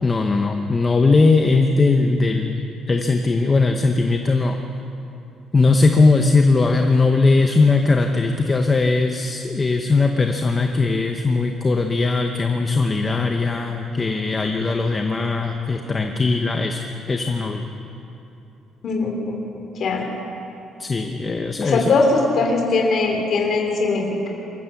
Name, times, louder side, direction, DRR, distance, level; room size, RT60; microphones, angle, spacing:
voice 1, 0.0-4.6 5.5-16.8 17.1-17.6 20.8-21.9, left 3 dB, 20° left, 4 dB, 0.9 m, -19 dB
voice 2, 18.8-19.4 19.7-20.1 21.6-24.3, left 3 dB, 45° left, 1 dB, 2.9 m, -20 dB
25.0 x 15.0 x 7.1 m, 2.9 s
cardioid pair, 165°, 0 cm